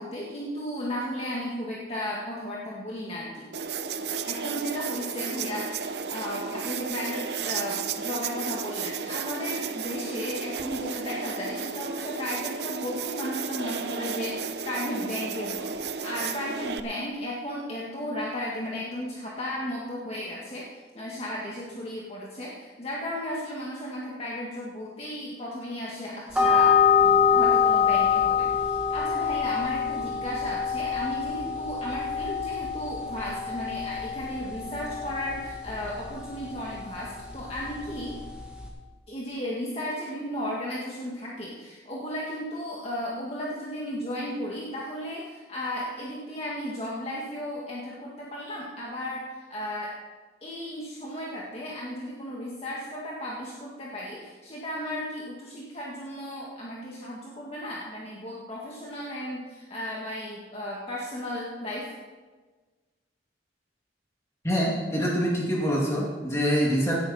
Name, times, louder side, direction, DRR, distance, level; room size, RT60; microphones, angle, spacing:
voice 1, 0.0-3.5 4.3-20.7 20.9-38.2 39.1-49.2 49.5-49.9 50.4-61.9, equal, 35° left, -5 dB, 1.8 m, -35 dB
sound 1, 3.5-16.8, right 6 dB, 65° right, 0.7 m, -33 dB
sound 2, 26.3-38.7, left 7 dB, 5° right, 2.1 m, -26 dB
voice 2, 64.4-67.0, equal, 15° left, -4 dB, 2.3 m, -25 dB
17.5 x 11.5 x 4.3 m, 1.4 s
head